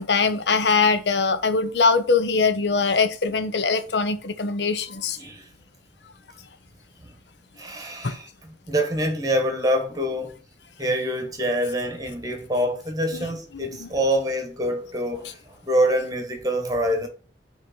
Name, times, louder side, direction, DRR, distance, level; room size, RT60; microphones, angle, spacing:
voice 1, 0.0-5.2 8.0-8.2 13.5-13.9, left 4 dB, 80° left, 0.8 m, -22 dB
voice 2, 5.2-5.5 7.0-7.1 7.6-10.3 10.8-15.4 15.6-17.1, equal, 20° right, 1.3 m, -25 dB
9.3 x 3.2 x 4.3 m
head